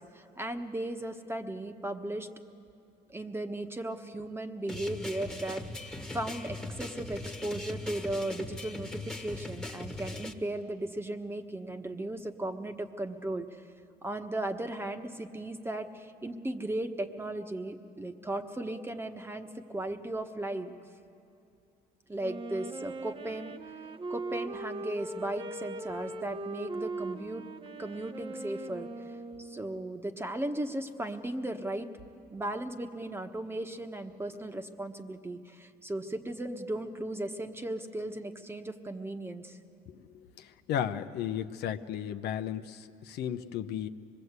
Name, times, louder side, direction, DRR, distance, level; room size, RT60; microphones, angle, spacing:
voice 1, 0.0-2.3 3.1-13.7 14.0-20.7 22.1-23.6 24.1-27.4 27.8-31.9 32.3-39.6, right 1 dB, 15° right, 6 dB, 1.2 m, -36 dB
sound 1, 4.7-10.3, left 2 dB, 5° left, 1.4 m, -40 dB
Wind instrument woodwind instrument, 22.2-29.9, right 2 dB, 30° right, 0.9 m, -40 dB
voice 2, 40.4-43.9, left 10 dB, 75° left, 8 dB, 0.9 m, -34 dB
25.0 x 21.0 x 8.2 m, 2.7 s
cardioid pair, 110°, 17 cm